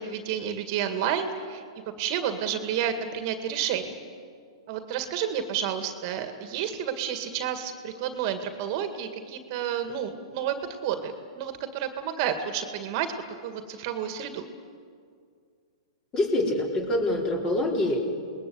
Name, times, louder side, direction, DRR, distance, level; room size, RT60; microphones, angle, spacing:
voice 1, 0.0-1.6 2.0-3.9 4.7-10.6 10.8-13.1 13.4-14.4, right 9 dB, 45° right, 7 dB, 2.1 m, -30 dB
voice 2, 16.1-18.1, left 1 dB, 25° left, 0 dB, 4.6 m, -25 dB
28.0 x 20.0 x 8.1 m, 2.2 s
hypercardioid pair, 125°, 3 cm